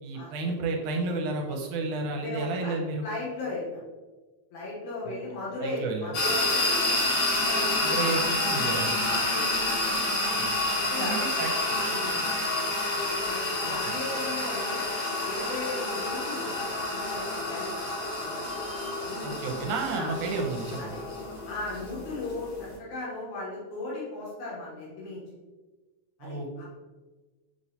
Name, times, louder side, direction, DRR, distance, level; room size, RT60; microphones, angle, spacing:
voice 1, 0.0-3.1 5.1-5.2 5.6-6.1 7.8-8.9 10.4-10.5 11.0-11.8 13.7-14.0 19.2-20.9 26.2-26.7, right 3 dB, 80° right, 1 dB, 2.1 m, -32 dB
voice 2, 2.1-2.7 3.0-3.8 4.5-8.4 9.0-10.1 10.7-11.3 11.9-12.3 13.2-14.8 15.3-17.8 18.2-18.4 19.0-19.4 19.9-20.1 20.8-21.0 21.5-25.2 26.2-26.7, left 2 dB, 80° left, -6 dB, 2.4 m, -37 dB
sound 1, 6.1-22.8, left 2 dB, 60° left, 1.9 m, -29 dB
5.9 x 3.1 x 2.7 m, 1.2 s
omnidirectional pair, 3.5 m